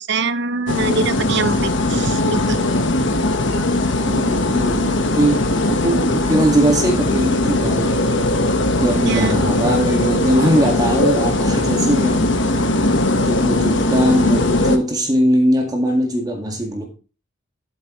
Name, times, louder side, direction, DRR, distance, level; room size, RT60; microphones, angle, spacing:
voice 1, 0.0-2.6 9.1-9.4, right 3 dB, 60° right, 14 dB, 0.8 m, -23 dB
sound 1, 0.7-14.8, left 2 dB, 65° left, 1.3 m, -19 dB
voice 2, 4.1-8.0 8.8-12.4 13.3-16.9, equal, 20° right, 2 dB, 1.9 m, -20 dB
12.0 x 8.1 x 3.2 m, 0.33 s
head